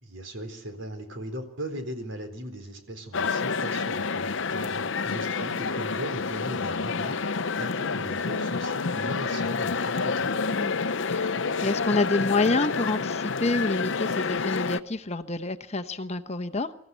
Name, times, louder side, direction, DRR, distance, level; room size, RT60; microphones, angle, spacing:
voice 1, 0.0-10.4, right 1 dB, 65° right, 6 dB, 3.9 m, -38 dB
sound 1, 3.1-14.8, left 4 dB, 60° left, 0.7 m, -28 dB
voice 2, 10.5-16.7, left 3 dB, 30° left, 10 dB, 0.9 m, -28 dB
25.0 x 14.5 x 8.0 m, 0.77 s
head